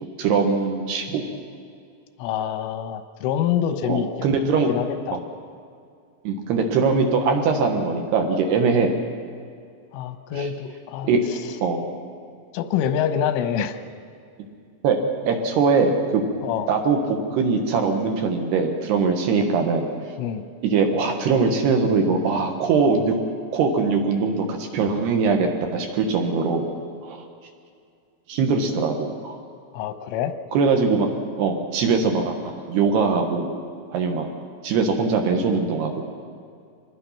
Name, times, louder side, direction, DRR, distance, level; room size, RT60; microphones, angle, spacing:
voice 1, 0.2-1.2 3.8-4.7 6.2-8.9 10.4-10.5 11.0-11.2 11.6-11.8 14.8-15.0 15.2-16.2 16.7-19.9 20.6-23.1 23.5-26.7 27.0-27.2 28.3-29.4 30.5-31.1 31.4-33.5 33.9-34.3 34.6-36.0, right 4 dB, 65° right, 3 dB, 3.3 m, -21 dB
voice 2, 2.2-4.3 4.7-5.2 9.9-11.6 12.5-13.8 16.4-16.7 20.2-20.4 29.7-30.3, left 9 dB, 90° left, 9 dB, 3.5 m, -26 dB
25.5 x 20.0 x 5.9 m, 2.3 s
omnidirectional pair, 5.6 m